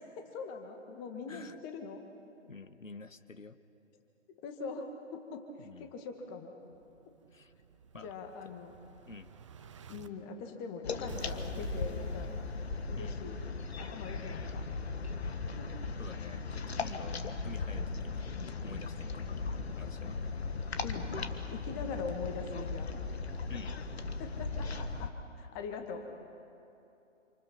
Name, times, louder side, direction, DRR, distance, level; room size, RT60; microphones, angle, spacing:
voice 1, 0.2-2.0 4.4-5.4 5.8-6.5 8.0-8.7 9.9-12.3 12.9-13.4 13.8-14.7 15.6-15.7 20.8-21.1 21.5-22.9 24.2-25.1 25.4-26.1, left 4 dB, 20° left, 4 dB, 1.6 m, -42 dB
voice 2, 1.3-1.6 2.5-3.6 5.6-5.9 7.3-7.5 7.9-8.1 9.1-9.3 13.0-13.2 16.0-17.2 17.4-18.3 18.6-20.1 23.5-23.8, left 3 dB, 85° left, 11 dB, 1.2 m, -49 dB
Explosion, 6.7-10.1 11.1-13.1, right 5 dB, 25° right, 0.7 m, -49 dB
sound 1, 10.8-25.1, left 4 dB, 55° left, 1.6 m, -38 dB
28.0 x 26.0 x 5.9 m, 2.8 s
figure-of-eight pair, 140°, 38 cm